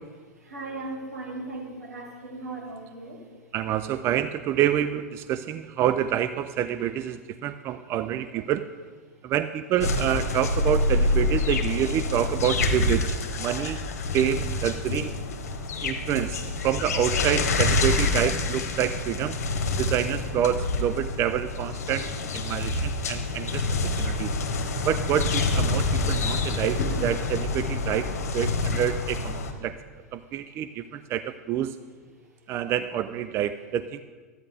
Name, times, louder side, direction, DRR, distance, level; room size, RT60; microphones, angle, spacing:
voice 1, 0.4-3.3, right 2 dB, 80° right, -1 dB, 2.3 m, -37 dB
voice 2, 3.5-8.9 9.2-13.8 14.1-15.1 15.8-19.4 19.8-22.1 22.3-23.7 24.0-24.3 24.9-29.8 30.1-31.8 32.5-34.0, right 10 dB, 30° right, 12 dB, 0.3 m, -27 dB
sound 1, 9.8-29.5, left 2 dB, 70° left, 1.1 m, -27 dB
12.0 x 9.3 x 3.5 m, 1.5 s
figure-of-eight pair, 95°, 9 cm